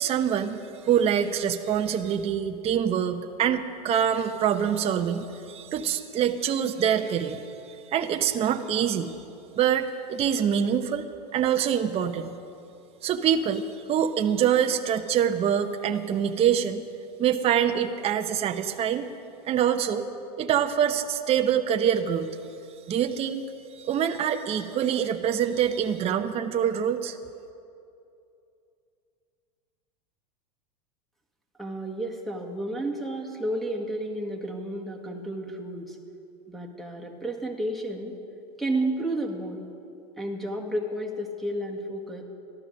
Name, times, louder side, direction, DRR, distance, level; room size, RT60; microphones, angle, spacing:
voice 1, 0.0-9.1 9.6-11.1 11.3-12.4 13.0-13.6 13.9-16.8 17.2-19.1 19.4-20.1 20.4-22.3 22.9-23.4 23.7-27.2, right 9 dB, 30° right, 6 dB, 0.8 m, -25 dB
voice 2, 31.6-36.0 36.5-38.2 38.6-39.6 40.2-42.2, right 1 dB, ahead, 1 dB, 1.8 m, -31 dB
14.0 x 12.0 x 6.4 m, 2.7 s
hypercardioid pair, 115°, 21 cm